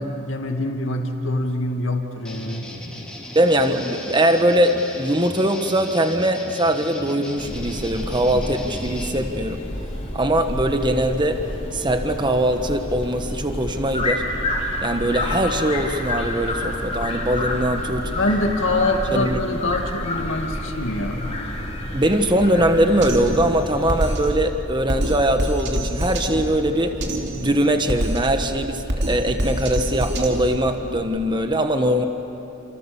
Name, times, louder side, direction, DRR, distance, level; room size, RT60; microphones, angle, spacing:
voice 1, 0.0-2.7 18.1-21.4, left 2 dB, 60° left, 3 dB, 2.4 m, -24 dB
sound 1, 2.3-9.1, left 1 dB, 5° left, 3.2 m, -37 dB
voice 2, 3.3-9.6 10.1-11.5 11.7-14.2 14.8-18.1 19.1-19.4 21.9-27.0 27.4-32.0, right 1 dB, 20° right, 6 dB, 1.3 m, -21 dB
sound 2, 7.4-24.3, left 1 dB, 30° left, 3.6 m, -29 dB
Drum kit, 23.0-31.0, right 1 dB, 55° right, 3.0 m, -27 dB
29.0 x 27.5 x 7.1 m, 3.0 s
head